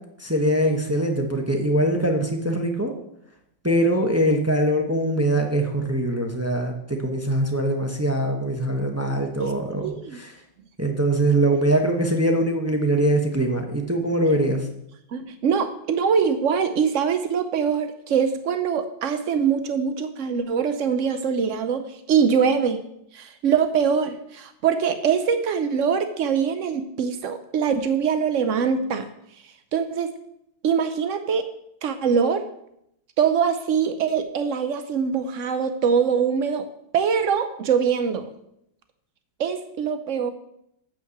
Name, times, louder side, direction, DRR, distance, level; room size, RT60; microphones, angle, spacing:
voice 1, 0.2-2.9 3.6-10.3 10.8-14.7, right 1 dB, 20° right, 2 dB, 0.4 m, -22 dB
voice 2, 9.8-10.2 15.1-22.8 23.1-29.1 29.4-30.1 30.6-31.5 31.8-32.4 33.2-36.6 36.9-38.3 39.4-40.3, right 6 dB, 90° right, 9 dB, 0.6 m, -23 dB
8.4 x 5.7 x 7.9 m, 0.77 s
omnidirectional pair, 2.2 m